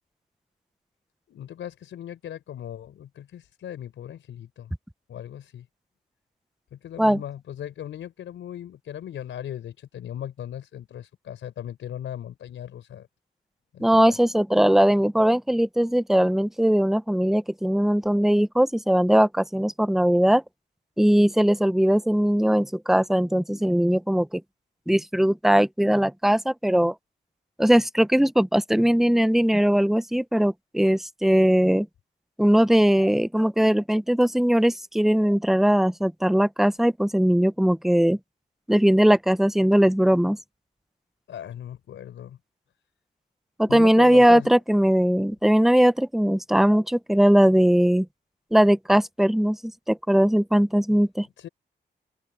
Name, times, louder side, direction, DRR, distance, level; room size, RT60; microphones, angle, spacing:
voice 1, 1.3-4.7 5.1-5.6 6.7-13.1 13.7-14.2 41.3-42.4 43.7-44.5 51.4-51.5, left 10 dB, 85° left, 4.8 m, -38 dB
voice 2, 13.8-20.4 21.0-24.4 24.9-26.9 27.6-31.9 32.4-38.2 38.7-40.4 43.6-48.1 48.5-51.3, equal, ahead, 1.1 m, -20 dB
open air
supercardioid pair, 50°, 19 cm